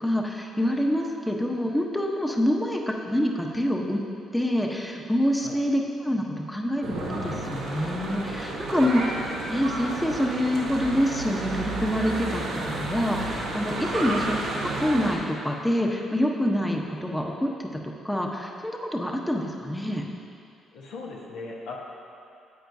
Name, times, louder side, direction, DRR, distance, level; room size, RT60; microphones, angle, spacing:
voice 1, 0.0-4.0 4.3-9.2 9.5-12.4 12.8-20.1, equal, 10° left, 0 dB, 0.9 m, -26 dB
Church bell / Traffic noise roadway noise, 6.8-15.2, right 2 dB, 85° right, 1.4 m, -31 dB
voice 2, 20.7-21.8, left 3 dB, 80° left, -2 dB, 1.0 m, -39 dB
9.4 x 8.0 x 2.7 m, 2.5 s
supercardioid pair, 55°, 0 cm